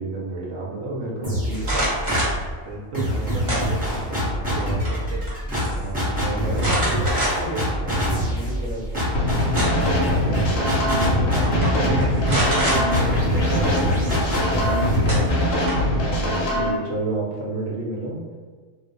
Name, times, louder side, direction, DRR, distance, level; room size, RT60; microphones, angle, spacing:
voice 1, 0.0-1.9 4.4-4.6 5.5-9.3 14.6-14.8 16.0-18.3, right 2 dB, 55° right, -4 dB, 1.0 m, -31 dB
sound 1, 1.2-2.5 2.9-16.6, equal, 5° right, 0.9 m, -25 dB
sound 2, 1.5-2.4 3.5-4.1 4.5-5.0 5.3-5.4 6.6-7.6 8.1-8.2 9.2-10.0 11.0-11.1 11.4-11.7 12.2-12.8 14.5-14.6 15.1-15.9, right 1 dB, 35° right, 1.1 m, -25 dB
voice 2, 2.6-5.2 10.1-15.6, right 1 dB, 80° right, -3 dB, 1.0 m, -32 dB
sound 3, 9.1-16.7, left 1 dB, 75° left, 1.0 m, -23 dB
2.5 x 2.3 x 3.9 m, 1.5 s
omnidirectional pair, 1.4 m